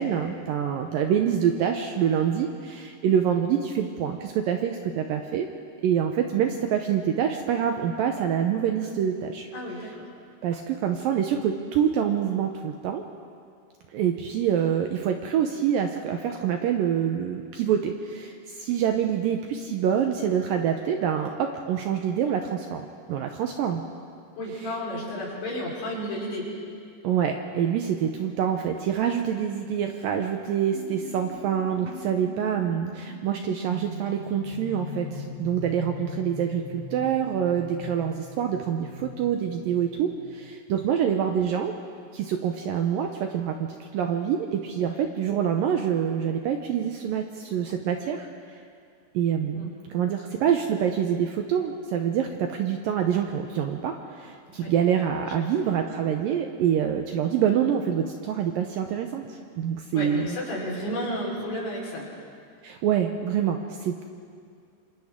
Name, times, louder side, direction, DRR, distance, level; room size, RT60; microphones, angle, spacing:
voice 1, 0.0-5.5 5.8-9.5 9.8-9.9 10.4-13.0 13.9-22.8 23.1-23.8 24.5-24.8 27.0-41.7 42.1-48.6 49.1-60.4 62.6-64.0, right 8 dB, 75° right, 4 dB, 2.1 m, -26 dB
voice 2, 9.5-9.9 24.3-26.5 44.8-45.0 49.5-49.7 54.6-54.7 55.2-55.4 59.9-62.0, left 1 dB, 70° left, -4 dB, 6.3 m, -32 dB
sound 1, 30.7-41.0, left 2 dB, 25° left, 2.9 m, -40 dB
27.5 x 26.5 x 3.7 m, 2.3 s
omnidirectional pair, 4.8 m